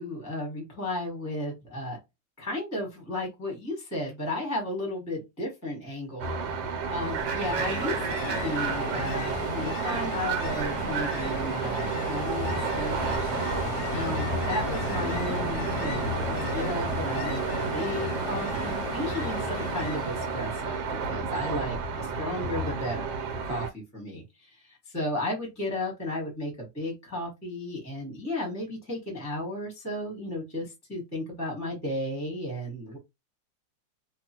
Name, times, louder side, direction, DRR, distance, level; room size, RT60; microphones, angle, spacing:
voice 1, 0.0-2.0 2.4-13.2 13.9-20.8 21.1-33.0, left 1 dB, 15° left, -1 dB, 0.7 m, -34 dB
sound 1, 6.2-23.7, right 5 dB, 85° right, 1.3 m, -31 dB
Ocean, 6.8-20.9, left 4 dB, 70° left, 0.9 m, -35 dB
2.9 x 2.3 x 2.8 m, 0.21 s
omnidirectional pair, 2.0 m